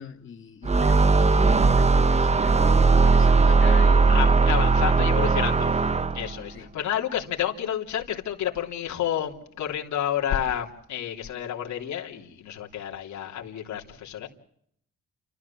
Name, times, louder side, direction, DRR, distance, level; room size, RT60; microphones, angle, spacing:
voice 1, 0.0-5.4 6.5-6.7, left 7 dB, 40° left, 2.1 m, -41 dB
sound 1, 0.6-6.4, right 4 dB, 20° right, 0.9 m, -19 dB
voice 2, 4.1-5.7 6.1-14.3, left 10 dB, 70° left, 3.2 m, -30 dB
30.0 x 14.0 x 7.2 m
cardioid pair, 90°, 30 cm